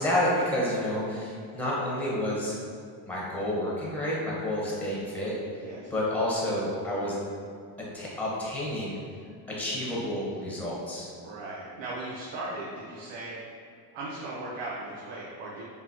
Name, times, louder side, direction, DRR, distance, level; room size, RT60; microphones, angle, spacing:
voice 1, 0.0-2.6 3.1-5.3 5.9-7.2 7.9-9.0 9.5-11.1, left 1 dB, 5° left, -6 dB, 1.2 m, -29 dB
voice 2, 5.6-5.9 11.2-13.6 13.9-15.6, right 2 dB, 70° right, -5 dB, 0.9 m, -38 dB
5.3 x 2.9 x 2.9 m, 2.3 s
supercardioid pair, 90°, 50 cm